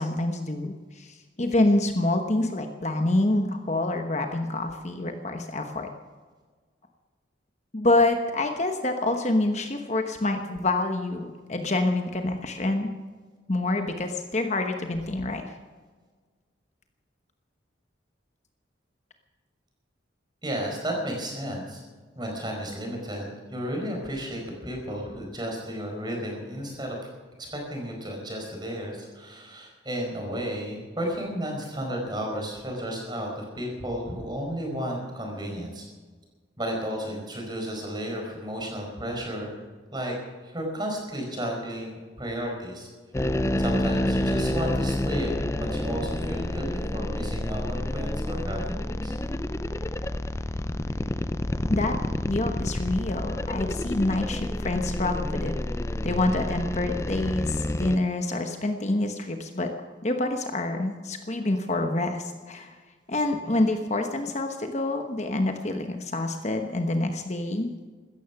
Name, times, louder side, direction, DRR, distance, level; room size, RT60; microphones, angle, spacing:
voice 1, 0.0-5.9 7.7-12.9 13.5-15.4 51.7-51.9 52.2-55.5 56.0-59.7 60.0-62.7 63.1-67.8, left 2 dB, 35° left, 5 dB, 1.1 m, -27 dB
voice 2, 20.4-21.8 22.1-27.1 27.5-35.8 36.6-39.6 39.9-40.1 40.4-42.9 43.6-45.3 45.6-49.1, equal, 20° right, 1 dB, 4.8 m, -33 dB
sound 1, 43.1-58.0, left 1 dB, 15° left, 0.4 m, -29 dB
16.5 x 13.5 x 5.9 m, 1.5 s
head